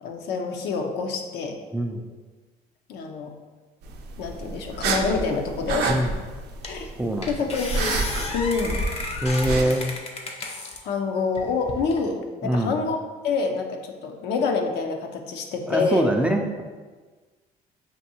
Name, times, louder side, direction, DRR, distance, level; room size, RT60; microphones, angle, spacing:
voice 1, 0.0-1.6 2.9-3.3 4.2-6.0 6.7-6.9 7.3-8.0 8.3-8.8 9.6-9.7 10.8-13.0 13.2-16.1, left 4 dB, 80° left, 4 dB, 0.6 m, -27 dB
sound 1, 3.8-9.6, right 4 dB, 75° right, 0.5 m, -30 dB
sound 2, 6.0-6.1 6.6-6.9 7.2-10.8 11.3-12.0, left 2 dB, 35° left, 0.6 m, -32 dB
voice 2, 9.2-10.0 12.4-12.8 15.7-16.6, right 1 dB, 5° right, 3 dB, 0.3 m, -23 dB
5.9 x 2.6 x 2.8 m, 1.4 s
cardioid pair, 110°, 17 cm